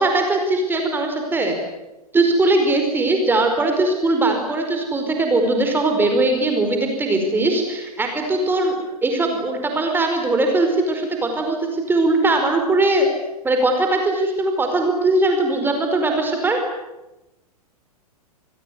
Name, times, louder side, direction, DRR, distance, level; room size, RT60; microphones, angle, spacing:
voice 1, 0.0-1.6 2.1-8.7 9.0-13.1 13.4-16.6, right 2 dB, 10° right, 4 dB, 4.8 m, -20 dB
28.0 x 20.5 x 9.6 m, 0.98 s
figure-of-eight pair, 105°, 20 cm